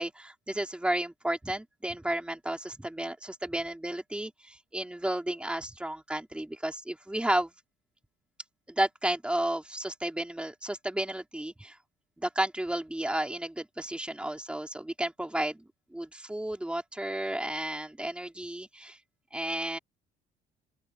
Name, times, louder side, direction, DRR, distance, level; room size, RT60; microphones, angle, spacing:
voice 1, 0.0-7.5 8.7-11.7 12.2-19.0 19.3-19.8, right 1 dB, 5° right, 4.3 m, -32 dB
open air
cardioid pair, 110°, 17 cm